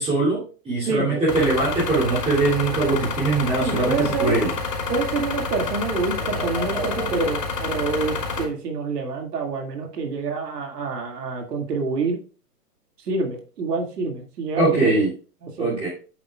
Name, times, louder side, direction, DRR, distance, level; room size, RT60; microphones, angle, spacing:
voice 1, 0.0-4.5 6.3-7.2 14.6-15.1 15.6-15.9, right 3 dB, 10° right, -8 dB, 2.8 m, -22 dB
voice 2, 0.9-1.2 3.6-4.4 4.9-12.2 13.0-15.0 15.4-15.8, right 4 dB, 75° right, 3 dB, 2.2 m, -27 dB
sound 1, 1.3-8.4, left 4 dB, 80° left, 3.1 m, -28 dB
8.4 x 7.3 x 2.3 m, 0.37 s
hypercardioid pair, 145°, 48 cm